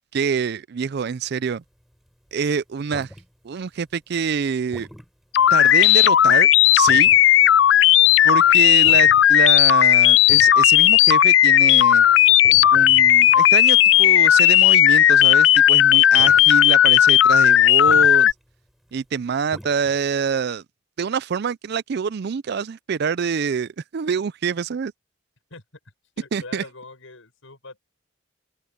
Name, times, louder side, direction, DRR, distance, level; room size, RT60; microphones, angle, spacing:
voice 1, 0.1-1.6 2.3-3.1 3.4-4.9 5.5-7.1 8.2-12.1 12.7-18.3 18.9-20.6 21.0-24.9 26.3-26.6, right 6 dB, 55° right, 0.4 m, -26 dB
sound 1, 1.5-3.9 4.3-5.1 5.4-5.5 5.8-6.1 6.6-7.4 7.7-14.7 14.9-15.6 15.9-16.5 16.9-17.0 17.2-17.3 17.5-20.1, equal, ahead, 3.6 m, -43 dB
sound 2, 5.3-18.3, left 12 dB, 65° left, 0.3 m, -14 dB
voice 2, 26.2-27.8, left 3 dB, 85° left, 5.3 m, -42 dB
open air
head